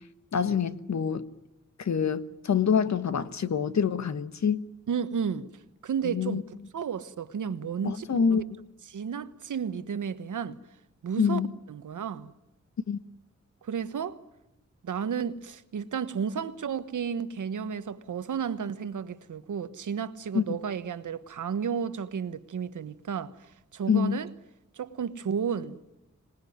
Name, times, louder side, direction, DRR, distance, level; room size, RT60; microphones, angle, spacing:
voice 1, 0.3-1.2 1.8-4.7 6.0-6.4 7.8-8.4 11.2-11.5 12.9-13.0 20.3-20.4 23.9-24.2, left 6 dB, 65° left, 1.3 m, -26 dB
voice 2, 4.9-8.2 8.9-10.6 11.0-11.4 11.7-12.3 13.6-14.2 14.8-24.3 24.7-25.8, right 7 dB, 85° right, 1.3 m, -32 dB
25.5 x 19.5 x 9.4 m
wide cardioid pair, 140°, 30 cm